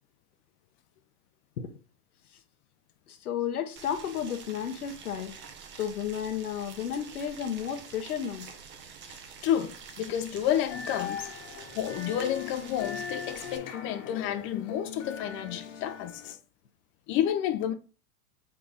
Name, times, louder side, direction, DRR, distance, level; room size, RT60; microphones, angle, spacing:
voice 1, 3.1-5.4 5.8-8.5, left 9 dB, 80° left, 0.8 m, -33 dB
Boiling, 3.8-13.6, right 6 dB, 25° right, 0.7 m, -47 dB
voice 2, 9.4-11.3 11.7-16.4 17.1-17.7, left 10 dB, 30° left, 0.5 m, -30 dB
sound 1, 10.7-16.3, left 7 dB, 60° left, 1.1 m, -40 dB
4.2 x 3.3 x 3.5 m
hypercardioid pair, 100°, 44 cm